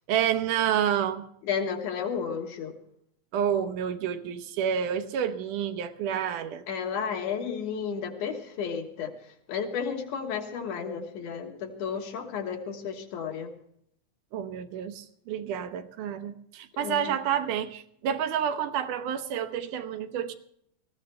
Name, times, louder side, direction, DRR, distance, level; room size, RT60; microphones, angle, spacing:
voice 1, 0.1-1.3 3.3-6.6 14.3-20.3, right 9 dB, 90° right, 9 dB, 2.5 m, -29 dB
voice 2, 1.4-2.7 6.7-9.1 9.5-13.5 16.7-17.2, left 6 dB, 75° left, 4 dB, 2.9 m, -32 dB
19.5 x 15.0 x 3.3 m, 0.70 s
omnidirectional pair, 3.5 m